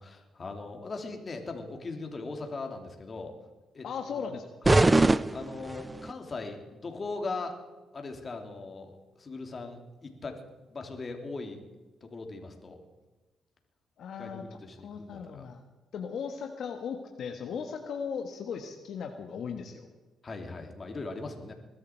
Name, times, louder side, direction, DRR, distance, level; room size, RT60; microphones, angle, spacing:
voice 1, 0.0-3.3 3.7-4.3 4.7-4.9 5.3-7.6 7.9-10.3 10.7-11.6 12.0-12.8 14.2-15.5 20.2-21.5, left 3 dB, 35° left, 4 dB, 2.8 m, -39 dB
voice 2, 3.8-4.8 14.0-15.6 15.9-19.9, left 6 dB, 65° left, 5 dB, 1.3 m, -37 dB
sound 1, 4.6-6.1, right 2 dB, 20° right, 0.5 m, -23 dB
21.0 x 13.0 x 4.6 m, 1.2 s
cardioid pair, 90°, 0 cm